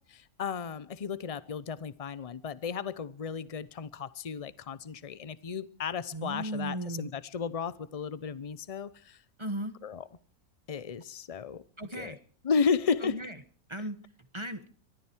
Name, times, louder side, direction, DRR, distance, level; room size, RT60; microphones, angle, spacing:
voice 1, 0.4-9.2 9.8-10.0 10.7-11.6 11.9-12.1 12.4-13.2, left 6 dB, 35° left, 0.7 m, -33 dB
voice 2, 6.1-7.1 9.4-9.7 11.8-12.2 13.0-13.3 13.7-14.0 14.3-14.7, right 1 dB, 20° right, 1.2 m, -36 dB
24.0 x 13.5 x 4.5 m
omnidirectional pair, 1.5 m